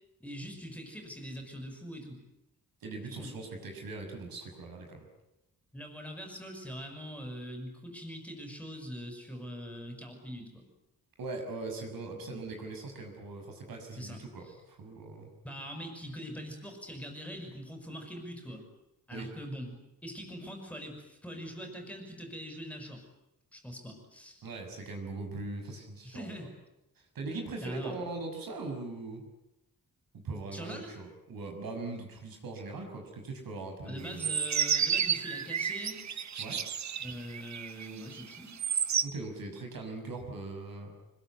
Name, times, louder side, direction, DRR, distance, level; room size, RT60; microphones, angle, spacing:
voice 1, 0.2-2.2 3.1-3.3 5.7-10.6 12.3-12.7 13.9-14.6 15.4-18.6 19.1-23.0 23.5-24.4 26.0-26.5 27.6-28.0 30.5-30.9 33.9-36.0 37.0-38.6, equal, 5° left, 3 dB, 6.0 m, -43 dB
voice 2, 2.8-5.1 11.2-15.3 19.1-19.3 24.4-26.3 27.1-29.2 30.1-34.3 36.4-36.6 39.0-40.9, right 3 dB, 80° right, 4 dB, 6.4 m, -40 dB
sound 1, 34.0-39.0, right 8 dB, 55° right, 1.1 m, -31 dB
25.5 x 22.0 x 9.6 m, 0.89 s
wide cardioid pair, 155°, 34 cm